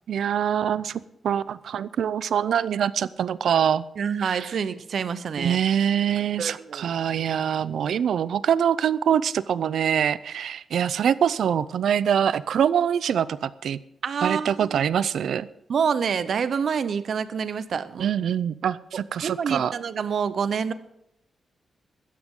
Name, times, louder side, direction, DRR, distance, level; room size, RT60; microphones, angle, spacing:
voice 1, 0.1-3.8 4.2-4.5 5.4-13.8 14.2-15.5 18.0-19.7, right 8 dB, 80° right, 0.5 m, -24 dB
voice 2, 4.0-5.6 6.4-6.9 14.0-14.8 15.7-18.1 19.2-20.7, right 6 dB, 60° right, 0.9 m, -27 dB
16.0 x 13.5 x 3.8 m
wide cardioid pair, 135°, 0 cm